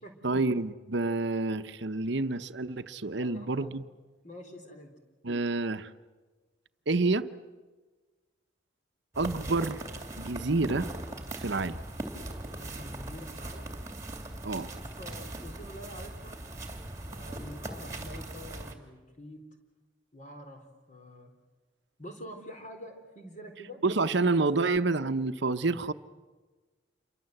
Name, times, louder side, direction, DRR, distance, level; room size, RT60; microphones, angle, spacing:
voice 1, 0.2-3.8 5.2-5.9 6.9-7.3 9.2-9.8 10.2-10.9 11.4-11.8 14.4-14.7 23.8-25.9, right 3 dB, 60° right, 10 dB, 0.9 m, -28 dB
voice 2, 3.1-3.8 4.2-4.9 12.6-13.8 14.8-16.4 17.0-19.4 20.1-21.3 22.0-23.8 24.5-24.7, equal, 40° left, 4 dB, 4.0 m, -46 dB
sound 1, 9.1-18.7, right 1 dB, 15° right, 2.6 m, -40 dB
28.0 x 23.5 x 7.9 m, 1.3 s
head